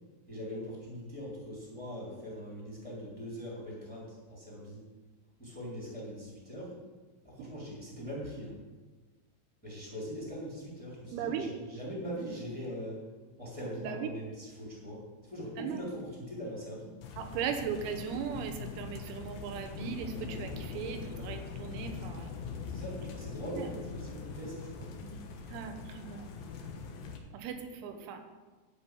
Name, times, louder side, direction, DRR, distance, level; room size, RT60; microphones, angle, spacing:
voice 1, 0.3-4.8 5.4-6.8 7.2-8.6 9.6-13.1 13.4-17.0 22.7-24.9, equal, ahead, -5 dB, 2.1 m, -41 dB
voice 2, 11.1-11.5 13.8-14.1 15.6-15.8 17.2-22.3 23.6-23.7 25.0-25.2 25.5-26.3 27.3-28.2, right 7 dB, 90° right, 6 dB, 3.9 m, -38 dB
sound 1, 17.0-27.2, left 5 dB, 85° left, 2.0 m, -42 dB
11.5 x 5.5 x 8.3 m, 1.3 s
omnidirectional pair, 6.0 m